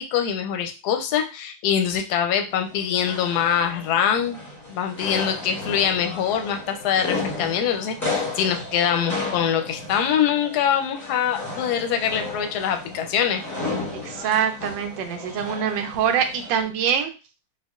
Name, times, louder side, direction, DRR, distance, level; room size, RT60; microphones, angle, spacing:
voice 1, 0.0-4.4 4.7-13.4, left 8 dB, 70° left, 6 dB, 1.0 m, -24 dB
sound 1, 2.5-16.6, left 3 dB, 10° left, 0.9 m, -34 dB
voice 2, 13.9-17.1, right 8 dB, 80° right, 6 dB, 1.3 m, -24 dB
4.5 x 2.3 x 2.4 m, 0.31 s
omnidirectional pair, 2.0 m